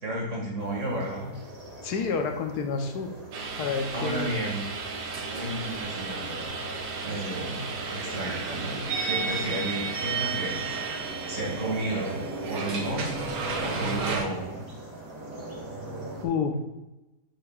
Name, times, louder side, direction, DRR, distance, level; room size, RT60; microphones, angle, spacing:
voice 1, 0.0-1.3 3.9-4.7 5.3-6.6 7.0-10.8 11.3-14.6, right 1 dB, 50° right, -3 dB, 2.4 m, -33 dB
sound 1, 0.6-16.2, right 2 dB, 25° right, 1.7 m, -40 dB
voice 2, 1.8-3.1 3.6-4.3 16.2-16.6, left 5 dB, 75° left, 5 dB, 1.4 m, -29 dB
sound 2, 3.3-14.2, right 5 dB, 65° right, 1.3 m, -33 dB
10.0 x 6.8 x 2.4 m, 1.0 s
omnidirectional pair, 1.7 m